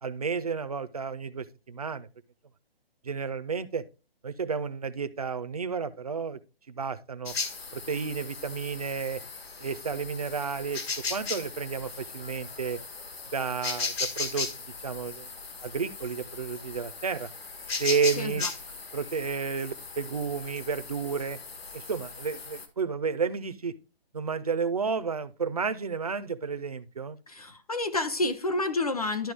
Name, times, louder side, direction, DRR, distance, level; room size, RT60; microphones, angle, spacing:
voice 1, 0.0-2.1 3.0-3.8 4.2-6.4 6.7-7.3 7.7-9.2 9.6-10.8 11.1-12.8 13.3-14.5 14.8-15.3 15.6-17.3 17.8-18.4 18.9-21.4 21.7-23.7 24.1-27.2, right 5 dB, 40° right, 0.5 m, -31 dB
sound 1, 7.2-22.7, left 4 dB, 75° left, 1.6 m, -37 dB
voice 2, 18.2-18.5 27.3-29.3, left 2 dB, 40° left, 0.5 m, -29 dB
12.0 x 4.4 x 3.3 m
hypercardioid pair, 175°, 30 cm